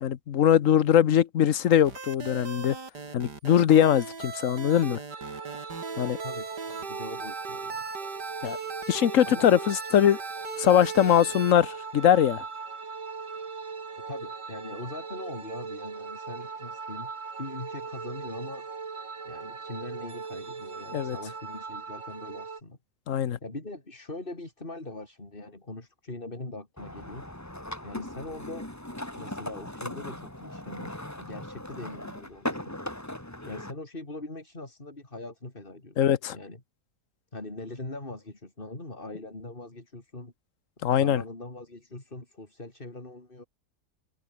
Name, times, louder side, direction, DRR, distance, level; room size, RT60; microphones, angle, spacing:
voice 1, 0.0-2.8 3.1-5.0 6.0-6.2 8.4-8.6 8.9-10.2 10.6-12.4 20.9-21.2 23.1-23.4 36.0-36.4 40.8-41.2, left 10 dB, 55° left, 1.2 m, -22 dB
sound 1, 1.8-11.6, right 4 dB, 85° right, 3.8 m, -39 dB
sound 2, 5.1-22.6, right 5 dB, 50° right, 2.3 m, -39 dB
voice 2, 6.0-7.9 9.2-9.5 14.0-17.1 17.4-18.7 19.2-22.8 23.4-27.3 27.8-28.7 29.1-32.7 33.5-36.0 36.3-36.6 37.3-40.3 40.9-43.4, left 2 dB, 30° left, 4.2 m, -41 dB
sound 3, 26.8-33.7, left 1 dB, 10° left, 2.8 m, -38 dB
open air
omnidirectional pair, 1.7 m